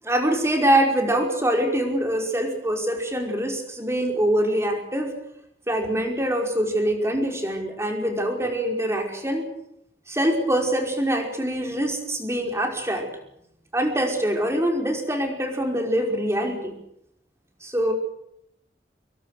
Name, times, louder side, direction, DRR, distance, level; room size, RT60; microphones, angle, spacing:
voice 1, 0.0-5.1 5.7-9.4 10.1-13.1 13.7-16.7 17.6-17.9, right 1 dB, 15° right, 3 dB, 5.2 m, -24 dB
25.5 x 23.0 x 6.7 m, 0.76 s
head